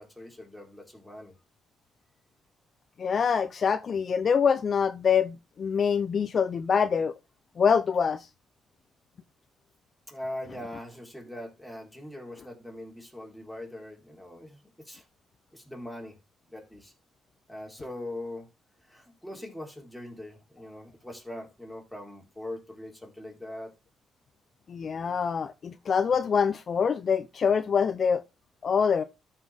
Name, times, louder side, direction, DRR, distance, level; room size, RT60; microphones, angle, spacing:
voice 1, 0.0-1.3 10.1-15.0 15.5-16.2 16.5-16.9 17.5-18.5 18.8-23.8, left 1 dB, 5° left, 4.0 m, -41 dB
voice 2, 3.0-7.1 7.6-8.3 24.7-28.2 28.6-29.0, left 6 dB, 50° left, 0.6 m, -25 dB
13.5 x 5.5 x 3.6 m
cardioid pair, 90°, 0 cm